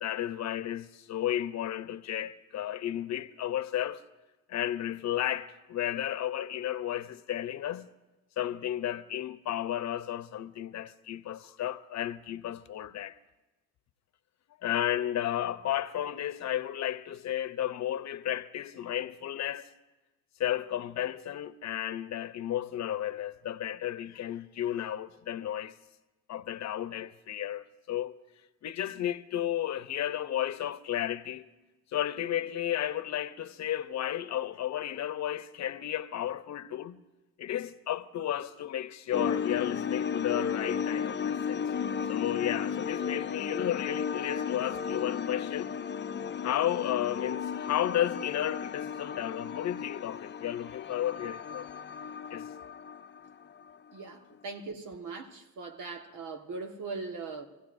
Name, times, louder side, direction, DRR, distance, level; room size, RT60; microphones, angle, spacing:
voice 1, 0.0-4.0 4.5-7.9 8.4-13.1 14.6-19.7 20.4-25.7 26.3-28.2 28.6-31.5 31.9-37.0 37.4-41.7 42.1-45.7 46.4-51.8 52.3-52.5, left 11 dB, 65° left, 0.8 m, -33 dB
sound 1, 39.1-53.7, left 7 dB, 35° left, 0.6 m, -34 dB
voice 2, 53.9-57.5, right 4 dB, 80° right, 1.6 m, -40 dB
26.0 x 15.5 x 2.6 m
cardioid pair, 90°, 30 cm